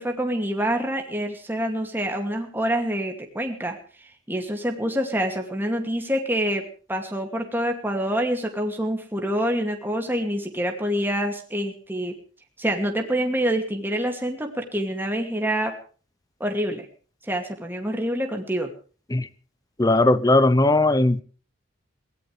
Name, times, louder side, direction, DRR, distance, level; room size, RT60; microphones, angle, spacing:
voice 1, 0.0-12.2 12.6-15.7 16.4-16.9 17.2-18.7, equal, 10° right, 3 dB, 2.5 m, -26 dB
voice 2, 19.8-21.2, left 2 dB, 20° left, 17 dB, 0.8 m, -18 dB
22.5 x 18.0 x 3.4 m, 0.39 s
head